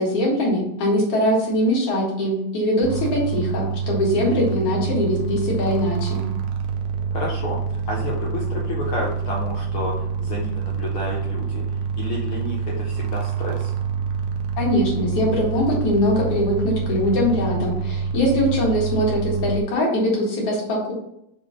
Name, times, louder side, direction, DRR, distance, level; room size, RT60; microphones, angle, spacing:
voice 1, 0.0-6.3 14.6-20.9, left 1 dB, 55° left, -3 dB, 2.6 m, -22 dB
sound 1, 2.8-19.6, right 6 dB, 75° right, 1.5 m, -27 dB
voice 2, 7.1-7.6 7.9-13.7, left 2 dB, 70° left, -3 dB, 1.3 m, -30 dB
5.5 x 3.6 x 4.9 m, 0.79 s
omnidirectional pair, 3.5 m